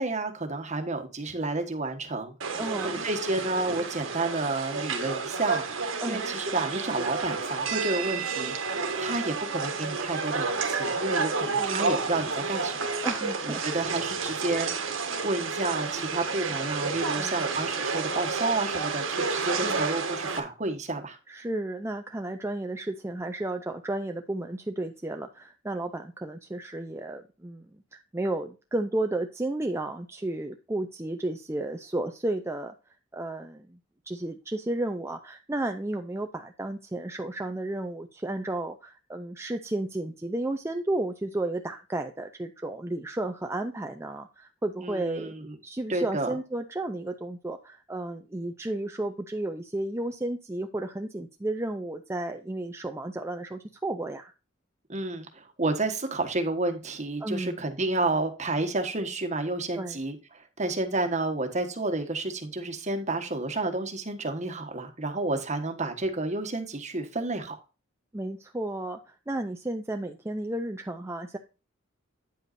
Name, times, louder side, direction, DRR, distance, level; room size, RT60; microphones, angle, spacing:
voice 1, 0.0-2.6 2.8-8.5 9.0-12.8 13.4-14.7 15.2-21.2 44.8-45.6 45.9-46.3 54.9-67.5, right 2 dB, 35° right, 1.4 m, -30 dB
sound 1, 2.4-20.4, right 4 dB, 85° right, 1.4 m, -30 dB
voice 2, 2.6-3.0 6.0-6.2 11.4-11.9 13.0-13.6 14.2-14.4 17.1-17.4 19.6-19.8 21.3-32.7 33.1-33.8 34.1-45.3 45.6-54.3 57.2-57.6 59.7-60.0 68.1-71.4, right 2 dB, 15° right, 0.5 m, -33 dB
9.3 x 7.9 x 2.6 m
head